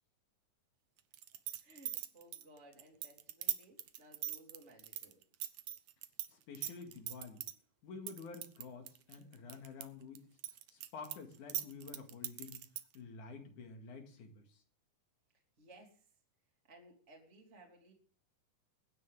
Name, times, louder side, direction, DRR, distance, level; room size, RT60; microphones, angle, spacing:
sound 1, 1.1-6.3 6.5-7.5 8.1-9.8 10.2-13.0, right 13 dB, 70° right, 1.8 m, -40 dB
voice 1, 1.6-5.2 15.6-16.1 16.7-17.9, right 1 dB, 20° right, 0 dB, 2.9 m, -59 dB
voice 2, 6.3-7.4 7.8-10.3 10.7-12.6 12.9-14.6, left 4 dB, 70° left, 4 dB, 3.4 m, -50 dB
22.5 x 9.7 x 3.6 m, 0.43 s
omnidirectional pair, 3.8 m